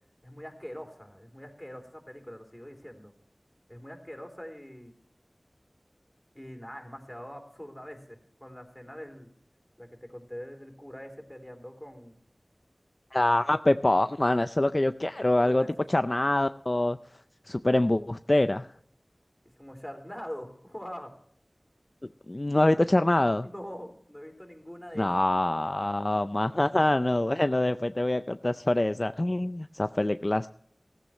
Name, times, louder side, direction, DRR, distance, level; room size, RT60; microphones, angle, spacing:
voice 1, 0.2-3.1 3.7-4.9 6.3-9.3 9.8-12.2 15.4-15.7 19.6-21.1 23.4-25.3, equal, 10° left, 3 dB, 3.8 m, -43 dB
voice 2, 13.1-17.0 17.5-18.7 22.3-23.5 25.0-30.5, left 1 dB, 45° left, 10 dB, 0.4 m, -25 dB
15.5 x 15.0 x 3.1 m, 0.63 s
wide cardioid pair, 40°, 0 cm